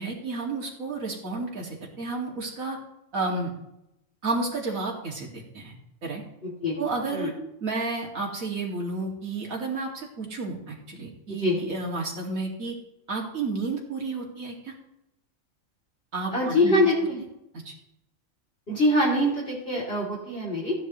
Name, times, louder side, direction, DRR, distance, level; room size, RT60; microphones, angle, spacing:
voice 1, 0.0-2.8 3.1-3.5 4.2-5.7 6.0-6.2 6.8-7.3 7.6-12.7 13.1-14.7 16.1-16.8 17.6-17.7, right 3 dB, 90° right, 0 dB, 2.8 m, -31 dB
voice 2, 6.4-6.8 7.1-7.3 11.4-11.6 16.3-17.2 18.7-20.7, left 1 dB, 45° left, -5 dB, 3.3 m, -24 dB
16.0 x 9.8 x 3.1 m, 0.84 s
omnidirectional pair, 1.4 m